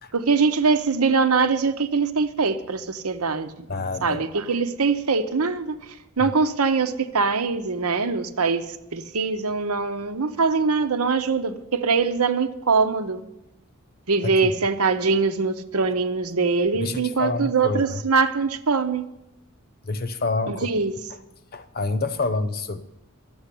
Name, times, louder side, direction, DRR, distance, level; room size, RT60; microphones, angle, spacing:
voice 1, 0.1-3.5 4.0-5.8 6.2-13.2 14.1-19.1 20.5-20.9, right 4 dB, 85° right, 9 dB, 1.0 m, -23 dB
voice 2, 3.7-4.2 6.2-6.3 14.2-14.6 16.8-18.0 19.8-20.7 21.5-22.8, left 3 dB, 45° left, 12 dB, 0.9 m, -28 dB
12.5 x 7.2 x 9.9 m, 0.87 s
head